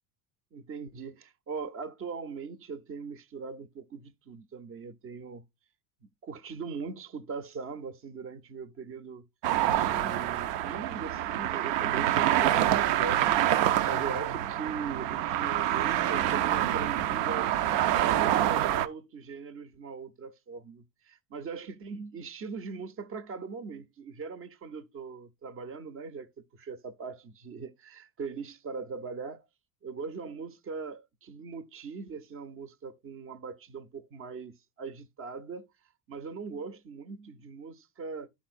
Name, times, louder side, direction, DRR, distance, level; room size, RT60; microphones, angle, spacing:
voice 1, 0.5-5.4 6.0-9.3 9.7-13.4 13.8-17.5 18.2-26.3 26.6-29.5 29.8-35.7 36.1-38.3, right 5 dB, 30° right, 0.6 m, -40 dB
sound 1, 9.4-18.9, right 12 dB, 85° right, 0.7 m, -26 dB
11.5 x 4.3 x 2.4 m
cardioid pair, 130°, 42 cm